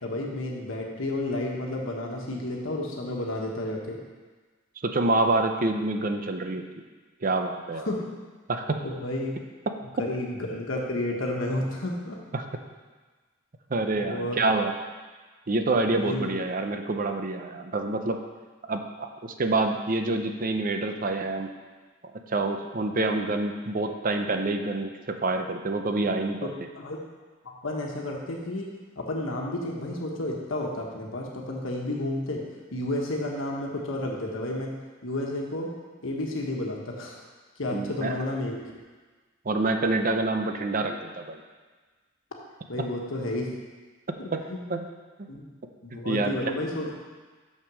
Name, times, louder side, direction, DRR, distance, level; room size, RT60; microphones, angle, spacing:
voice 1, 0.0-4.0 7.7-8.0 8.8-9.3 10.0-12.2 14.1-14.4 16.0-16.3 26.4-26.5 26.7-27.0 27.4-28.7 28.9-32.4 32.7-34.7 35.0-35.7 36.0-37.2 37.6-38.5 42.7-43.5 44.2-44.6 45.3-45.4 45.8-47.0, left 1 dB, 85° left, -1 dB, 1.2 m, -31 dB
voice 2, 4.8-6.6 7.2-7.9 8.5-8.8 9.7-9.8 12.3-12.4 13.7-14.7 15.5-18.2 18.7-21.5 22.0-26.5 37.7-38.2 39.4-41.4 44.1-44.9 46.0-46.4, right 2 dB, 45° right, 6 dB, 0.6 m, -27 dB
6.6 x 6.1 x 6.2 m, 1.4 s
head